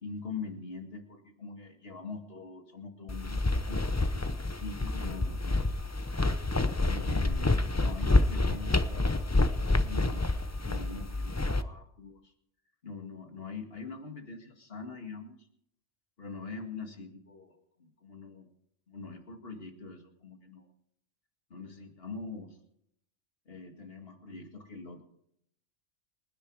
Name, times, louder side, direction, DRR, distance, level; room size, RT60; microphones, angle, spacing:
voice 1, 0.0-3.4 3.7-3.9 4.6-5.7 6.8-12.2 12.8-15.4 16.2-18.5 18.9-20.6 21.5-22.6 23.5-25.0, left 4 dB, 50° left, 4 dB, 2.3 m, -43 dB
sound 1, 3.1-11.6, left 2 dB, 20° left, 0.6 m, -28 dB
28.0 x 10.5 x 4.8 m, 0.73 s
omnidirectional pair, 1.3 m